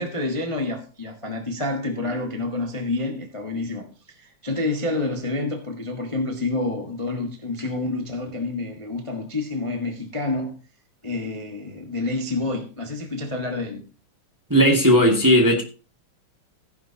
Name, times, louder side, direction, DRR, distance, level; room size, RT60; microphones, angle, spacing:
voice 1, 0.0-10.6 11.0-13.8, left 2 dB, 30° left, 0.5 m, -28 dB
voice 2, 14.5-15.6, equal, 10° right, 1.4 m, -16 dB
15.0 x 10.5 x 2.9 m
omnidirectional pair, 3.5 m